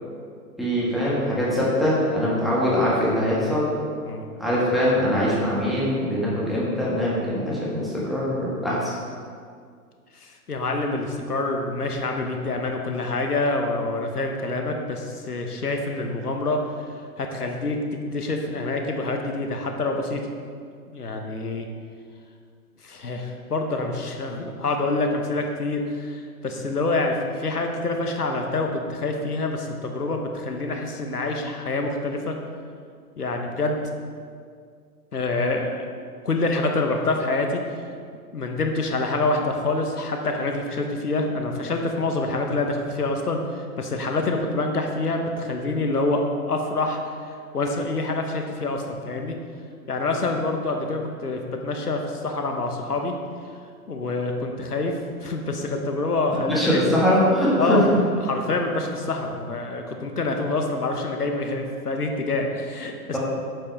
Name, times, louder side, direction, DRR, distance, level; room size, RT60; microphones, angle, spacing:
voice 1, 0.6-3.7 4.4-8.9 56.5-57.8 63.1-63.2, equal, ahead, -7 dB, 1.8 m, -22 dB
voice 2, 10.1-16.6 17.2-17.8 18.1-20.2 20.9-21.7 22.8-32.4 33.2-33.8 35.1-35.9 36.2-37.6 38.3-49.4 49.9-53.1 53.9-56.8 57.6-63.2, left 2 dB, 80° left, 3 dB, 1.1 m, -26 dB
9.0 x 7.7 x 3.5 m, 2.1 s
figure-of-eight pair, 115°, 45 cm